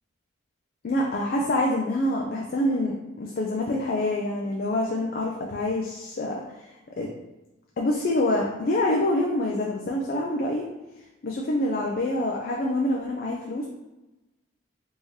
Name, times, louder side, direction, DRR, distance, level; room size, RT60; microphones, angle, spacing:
voice 1, 0.8-6.7 7.0-7.1 7.8-10.7 11.2-13.7, left 1 dB, 45° left, -1 dB, 0.3 m, -26 dB
3.5 x 2.7 x 3.1 m, 1.0 s
head